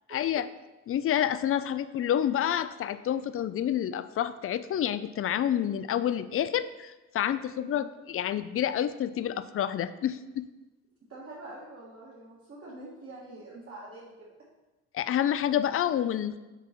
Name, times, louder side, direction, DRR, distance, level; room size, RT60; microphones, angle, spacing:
voice 1, 0.1-0.5 0.9-10.5 14.9-16.4, left 10 dB, 50° left, 13 dB, 0.4 m, -28 dB
voice 2, 7.6-7.9 11.1-14.3, right 2 dB, 50° right, -7 dB, 1.8 m, -45 dB
6.1 x 4.1 x 5.9 m, 1.1 s
cardioid pair, 90°, 30 cm